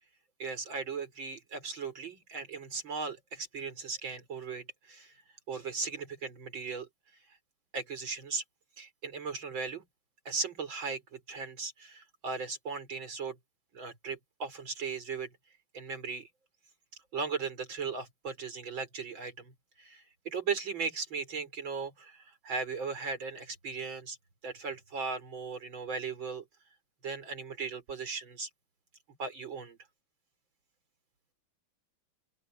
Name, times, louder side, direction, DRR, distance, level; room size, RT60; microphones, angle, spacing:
voice 1, 0.4-5.1 5.5-6.9 7.7-8.4 8.8-9.8 10.2-13.4 13.7-15.3 15.7-16.3 17.1-24.2 24.4-26.4 27.0-28.5 29.2-29.8, right 5 dB, 60° right, 5.0 m, -37 dB
open air
omnidirectional pair, 2.4 m